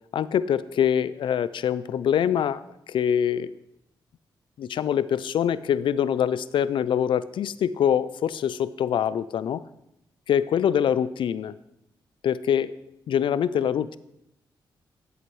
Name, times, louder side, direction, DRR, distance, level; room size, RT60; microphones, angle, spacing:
voice 1, 0.1-3.5 4.6-9.6 10.3-11.5 12.2-12.8 13.1-14.0, left 9 dB, 75° left, 16 dB, 0.3 m, -24 dB
11.0 x 7.8 x 3.1 m, 0.85 s
cardioid pair, 95°, 9 cm